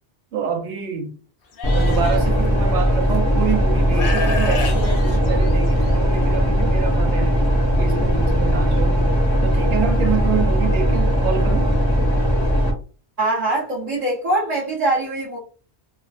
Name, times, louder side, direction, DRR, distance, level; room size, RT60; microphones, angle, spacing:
voice 1, 0.3-1.1 1.7-7.3 7.8-9.1 9.4-11.7, right 7 dB, 80° right, 1.0 m, -27 dB
Livestock farm animals working animals, 1.6-2.2 3.1-3.2 3.9-5.9, left 3 dB, 60° left, 0.8 m, -29 dB
sound 1, 1.6-12.7, equal, 25° left, 0.8 m, -18 dB
voice 2, 13.2-15.4, right 2 dB, 40° right, 1.1 m, -22 dB
3.4 x 2.1 x 2.4 m
omnidirectional pair, 1.2 m